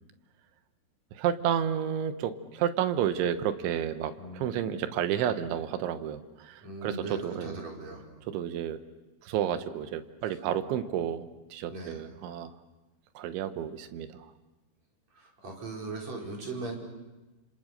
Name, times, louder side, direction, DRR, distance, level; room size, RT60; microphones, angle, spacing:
voice 1, 1.1-7.7 8.3-8.8 9.2-12.5 13.2-14.2, right 9 dB, 85° right, 10 dB, 3.6 m, -31 dB
voice 2, 4.2-4.6 6.6-8.0 11.7-12.0 15.1-16.8, right 2 dB, 40° right, -1 dB, 5.8 m, -39 dB
29.5 x 27.0 x 6.6 m, 1.1 s
omnidirectional pair, 5.2 m